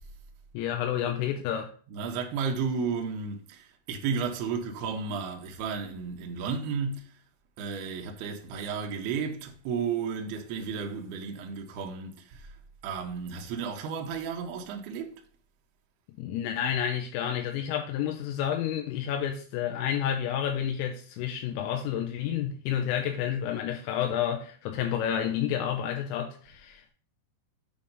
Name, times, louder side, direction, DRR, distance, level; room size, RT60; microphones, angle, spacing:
voice 1, 0.5-1.7 16.2-26.9, left 9 dB, 85° left, 3.3 m, -30 dB
voice 2, 1.9-7.2 7.6-12.5 12.8-15.2, right 5 dB, 85° right, 2.2 m, -33 dB
8.5 x 3.5 x 5.3 m
omnidirectional pair, 5.9 m